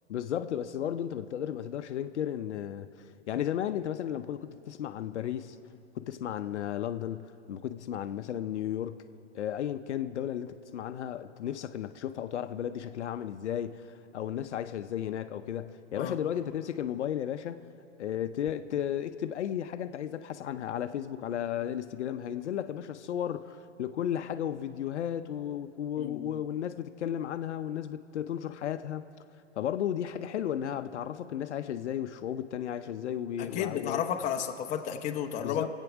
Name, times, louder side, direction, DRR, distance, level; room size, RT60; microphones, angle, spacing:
voice 1, 0.1-2.9 3.3-5.6 6.0-9.1 9.3-17.6 18.0-29.0 29.6-34.0 35.4-35.7, left 10 dB, 70° left, 11 dB, 0.6 m, -34 dB
voice 2, 26.0-26.4 33.4-35.6, left 9 dB, 20° left, 4 dB, 0.7 m, -32 dB
22.5 x 8.3 x 6.0 m, 2.6 s
hypercardioid pair, 125°, 36 cm